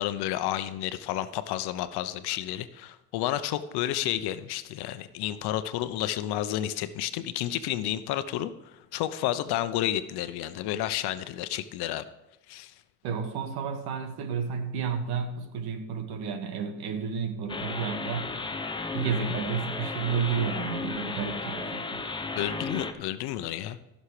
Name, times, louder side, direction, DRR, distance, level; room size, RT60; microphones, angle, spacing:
voice 1, 0.0-12.0 12.5-12.7 22.3-23.8, left 12 dB, 70° left, 12 dB, 0.9 m, -31 dB
voice 2, 13.0-18.3 18.9-22.0, right 6 dB, 65° right, 6 dB, 2.0 m, -31 dB
sound 1, 17.5-22.9, left 3 dB, 10° left, 0.8 m, -34 dB
14.5 x 6.6 x 4.9 m, 1.0 s
supercardioid pair, 105°, 41 cm